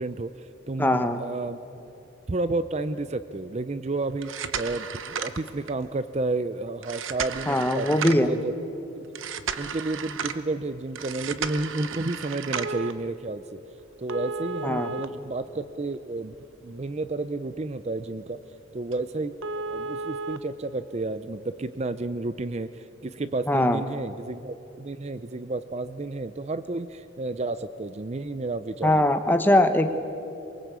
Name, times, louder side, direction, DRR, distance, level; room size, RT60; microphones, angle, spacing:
voice 1, 0.0-1.6 2.3-8.5 9.0-9.2 9.6-13.6 14.0-16.3 16.6-18.4 18.7-29.1, right 2 dB, 35° right, 12 dB, 0.5 m, -31 dB
voice 2, 0.8-1.2 7.5-8.3 14.6-14.9 23.5-23.8 28.8-29.9, left 1 dB, 10° left, 7 dB, 1.1 m, -21 dB
sound 1, 4.1-5.9 6.8-8.4 9.2-10.4 11.0-12.9 14.1-16.0 16.4-16.5 17.0-17.1 17.6-17.7 18.0-18.1 18.5-18.6 18.9-19.0 19.4-20.4 21.5-21.6, right 5 dB, 80° right, 1.0 m, -33 dB
23.5 x 23.0 x 8.2 m, 2.9 s
head